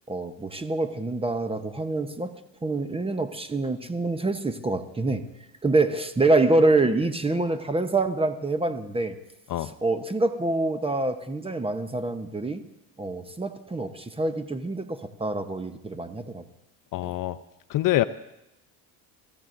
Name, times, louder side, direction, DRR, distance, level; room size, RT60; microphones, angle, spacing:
voice 1, 0.1-5.3 5.6-9.1 9.8-12.6 13.0-16.4, right 2 dB, 15° right, 9 dB, 0.9 m, -26 dB
voice 2, 16.9-17.4 17.7-18.0, left 15 dB, 50° left, 13 dB, 0.6 m, -24 dB
24.5 x 14.0 x 2.6 m, 0.89 s
supercardioid pair, 95°, 42 cm